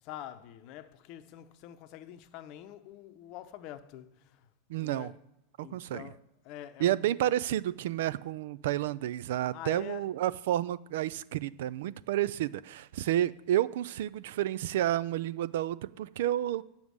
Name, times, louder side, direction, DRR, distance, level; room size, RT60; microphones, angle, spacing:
voice 1, 0.0-5.1 5.6-7.1 9.5-10.1, left 12 dB, 50° left, 0.8 m, -46 dB
voice 2, 4.7-5.1 5.6-6.1 6.8-16.6, right 13 dB, 65° right, 0.4 m, -30 dB
9.5 x 7.1 x 6.3 m
hypercardioid pair, 90°, 0 cm